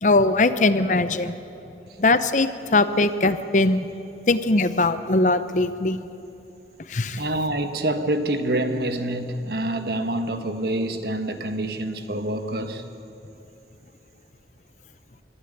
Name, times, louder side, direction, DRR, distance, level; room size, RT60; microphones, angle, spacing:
voice 1, 0.0-1.4 2.0-3.9 4.3-6.0 6.9-7.2, left 2 dB, 45° left, 12 dB, 0.7 m, -20 dB
voice 2, 7.2-12.8, right 1 dB, 60° right, 7 dB, 1.3 m, -26 dB
24.5 x 13.0 x 9.2 m, 2.8 s
head